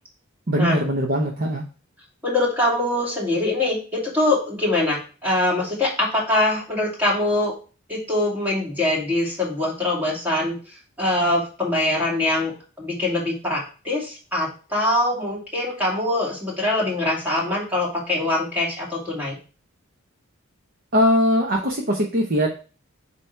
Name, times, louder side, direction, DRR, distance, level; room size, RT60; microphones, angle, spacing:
voice 1, 0.5-1.6 20.9-22.5, equal, 45° right, 0 dB, 0.9 m, -20 dB
voice 2, 2.2-7.6 7.9-12.5 12.8-19.4, left 1 dB, 10° right, -4 dB, 2.5 m, -23 dB
8.0 x 3.0 x 4.5 m, 0.35 s
head